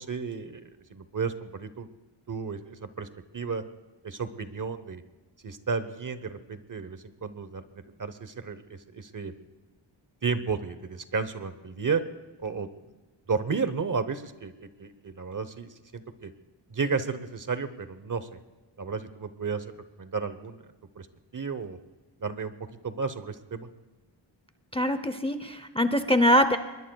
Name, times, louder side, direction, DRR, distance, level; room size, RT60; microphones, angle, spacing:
voice 1, 0.0-1.9 2.3-3.1 3.3-3.6 4.0-5.0 5.4-9.3 10.2-12.0 12.4-12.7 13.3-16.3 16.7-18.4 18.8-19.7 20.0-21.1 21.3-21.8 22.2-22.5 22.8-23.7, right 5 dB, 40° right, 12 dB, 0.9 m, -33 dB
voice 2, 24.7-26.6, equal, 10° left, 10 dB, 0.7 m, -23 dB
25.0 x 22.0 x 2.3 m, 1.2 s
wide cardioid pair, 135°, 47 cm